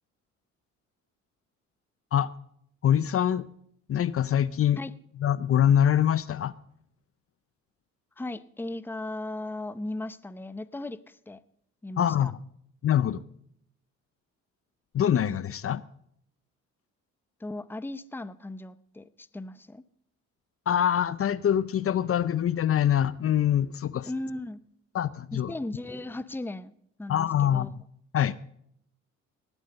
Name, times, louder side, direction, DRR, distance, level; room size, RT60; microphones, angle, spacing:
voice 1, 2.8-3.5 3.9-4.8 5.2-6.5 12.0-12.4 12.8-13.2 14.9-15.8 20.7-24.1 24.9-25.5 27.1-27.8 28.1-28.4, left 10 dB, 50° left, 0.6 m, -24 dB
voice 2, 8.2-11.4 11.8-12.3 17.4-19.8 24.1-24.6 25.3-26.7 27.0-27.7, left 2 dB, 5° left, 0.7 m, -37 dB
19.0 x 8.1 x 5.2 m
cardioid pair, 90°, 30 cm